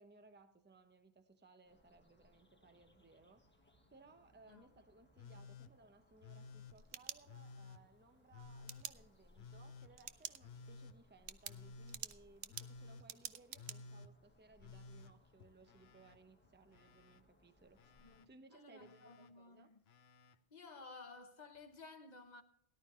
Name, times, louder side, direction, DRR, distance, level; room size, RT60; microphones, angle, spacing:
voice 1, 0.0-3.4 3.9-19.7, right 3 dB, 10° right, 0.8 m, -64 dB
sound 1, 1.6-18.3, left 1 dB, 10° left, 1.4 m, -70 dB
Telephone, 5.2-5.7 6.2-6.8 7.3-7.8 8.3-8.9 9.4-9.9 10.4-11.0 11.5-12.0 12.5-13.1 13.5-14.1 14.6-16.2 16.4-17.2 17.8-18.3 18.8-19.3 19.9-20.4 21.6-21.7, left 4 dB, 70° left, 1.0 m, -55 dB
sound 2, 6.6-7.7 8.7-8.9 10.0-10.4 10.8-10.9 11.3-13.8, right 10 dB, 80° right, 1.0 m, -47 dB
voice 2, 18.0-19.8 20.5-22.4, left 3 dB, 40° left, 1.1 m, -56 dB
18.0 x 11.5 x 3.2 m
omnidirectional pair, 1.1 m